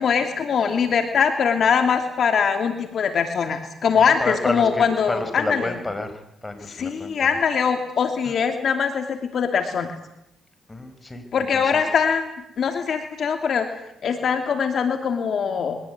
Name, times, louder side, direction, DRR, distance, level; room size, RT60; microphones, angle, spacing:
voice 1, 0.0-5.7 6.7-10.0 11.3-12.3 12.6-13.7 14.0-15.8, left 6 dB, 55° left, 6 dB, 2.7 m, -22 dB
voice 2, 3.9-6.1 6.4-7.4 8.2-8.3 10.7-11.8, left 2 dB, 20° left, 8 dB, 5.1 m, -30 dB
23.5 x 19.0 x 9.5 m, 0.80 s
cardioid pair, 90°, 0 cm